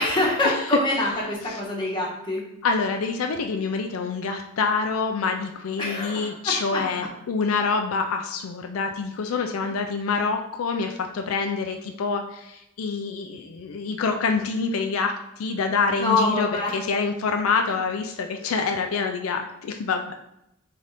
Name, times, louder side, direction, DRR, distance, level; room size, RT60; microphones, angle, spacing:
voice 1, 0.0-2.4 5.8-6.3 6.7-6.8 16.0-16.7, left 2 dB, 25° left, -4 dB, 1.2 m, -25 dB
voice 2, 2.6-20.3, left 4 dB, 80° left, 4 dB, 0.4 m, -26 dB
3.7 x 3.4 x 4.1 m, 0.81 s
head